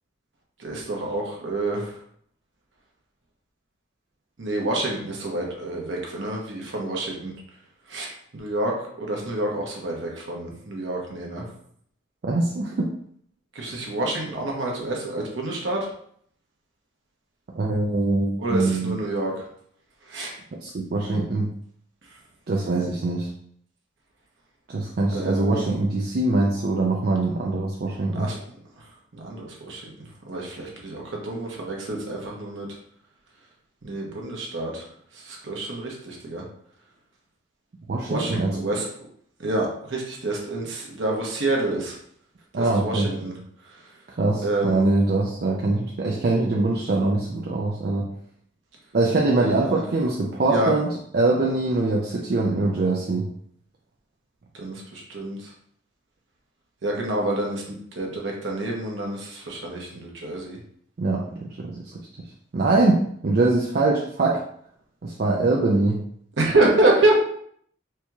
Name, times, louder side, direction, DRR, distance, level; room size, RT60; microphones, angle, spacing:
voice 1, 0.6-1.9 4.4-7.3 7.9-11.5 13.5-15.9 18.4-19.5 20.1-20.3 25.1-25.7 28.1-28.4 29.1-29.9 30.3-32.7 33.8-34.8 35.1-36.4 38.1-38.9 39.4-42.0 42.6-43.4 44.4-44.8 49.4-49.8 50.5-50.7 54.5-55.5 56.8-60.6 66.4-67.1, right 2 dB, 65° right, -1 dB, 0.9 m, -27 dB
voice 2, 12.2-12.9 17.6-19.0 20.6-21.5 22.5-23.3 24.7-28.3 37.9-38.5 42.5-43.1 44.2-48.1 48.9-53.3 61.0-61.8 62.5-64.4 65.0-66.0, right 2 dB, 50° right, -2 dB, 0.4 m, -23 dB
4.4 x 2.8 x 2.3 m, 0.64 s
head